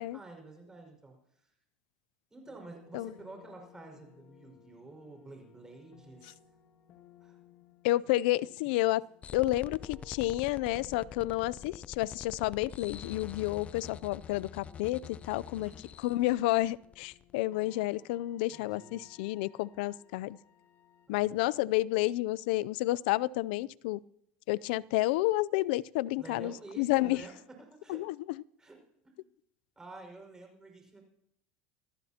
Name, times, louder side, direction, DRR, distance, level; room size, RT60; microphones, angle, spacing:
voice 1, 0.0-1.5 2.3-6.4 7.2-7.4 15.6-15.8 18.5-18.9 21.1-21.4 26.2-28.0 28.6-29.1 29.8-31.0, right 3 dB, 10° right, 2 dB, 5.3 m, -50 dB
sound 1, 2.5-21.1, left 9 dB, 50° left, 2.0 m, -60 dB
voice 2, 7.8-9.0 9.3-15.7 16.0-20.4 21.1-24.0 24.5-27.2 27.9-28.2, left 17 dB, 75° left, 23 dB, 0.4 m, -30 dB
sound 2, 9.2-17.3, left 7 dB, 25° left, 0.5 m, -46 dB
26.0 x 14.5 x 2.9 m, 0.77 s
supercardioid pair, 135°, 5 cm